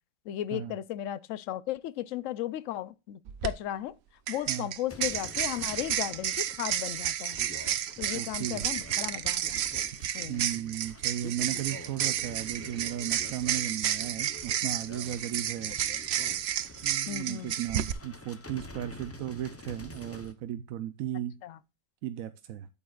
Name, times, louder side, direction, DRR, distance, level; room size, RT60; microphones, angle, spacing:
voice 1, 0.3-3.9 4.3-7.4 8.0-9.6 10.1-10.5 17.1-17.5 21.4-21.6, left 13 dB, 75° left, 0.9 m, -35 dB
sound 1, 3.3-3.5 4.3-17.9, right 10 dB, 60° right, 0.8 m, -31 dB
sound 2, 4.9-20.3, left 2 dB, 20° left, 0.4 m, -48 dB
voice 2, 8.1-8.7 10.3-15.7 16.8-21.3 22.0-22.7, right 11 dB, 90° right, 1.1 m, -36 dB
8.8 x 8.5 x 2.4 m
omnidirectional pair, 1.4 m